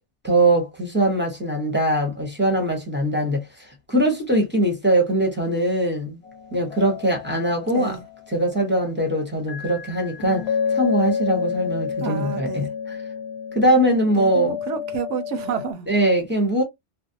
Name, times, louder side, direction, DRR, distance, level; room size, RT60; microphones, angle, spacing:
voice 1, 0.2-6.2 6.5-8.0 8.3-13.0 13.5-14.5 15.9-16.6, right 1 dB, 10° right, 0.7 m, -22 dB
sound 1, 6.2-9.0 9.5-15.7, left 6 dB, 70° left, 0.9 m, -30 dB
voice 2, 7.7-8.0 12.0-12.7 14.1-15.9, right 7 dB, 85° right, 0.9 m, -30 dB
2.5 x 2.0 x 2.6 m
omnidirectional pair, 1.2 m